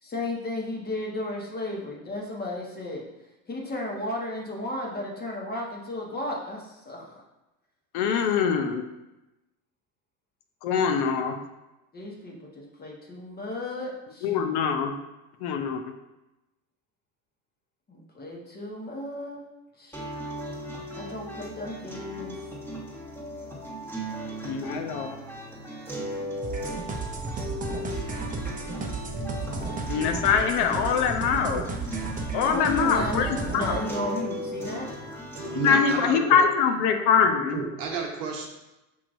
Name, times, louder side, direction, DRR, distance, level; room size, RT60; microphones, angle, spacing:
voice 1, 0.0-3.0 3.5-7.2 8.1-8.3 11.9-14.3 17.9-20.0 20.9-22.4 32.4-34.9, left 1 dB, 20° left, -2 dB, 1.1 m, -34 dB
voice 2, 7.9-8.8 10.6-11.3 14.2-14.9 15.4-15.8 24.4-25.2 29.9-31.6 32.3-33.8 35.6-37.6, left 6 dB, 55° left, 6 dB, 0.6 m, -23 dB
sound 1, 19.9-35.9, equal, 5° left, 1.3 m, -37 dB
sound 2, 26.4-33.8, right 3 dB, 20° right, 0.6 m, -34 dB
voice 3, 35.4-36.4 37.5-38.5, right 5 dB, 90° right, 1 dB, 1.0 m, -31 dB
6.3 x 2.8 x 2.5 m, 0.99 s
hypercardioid pair, 90°, 46 cm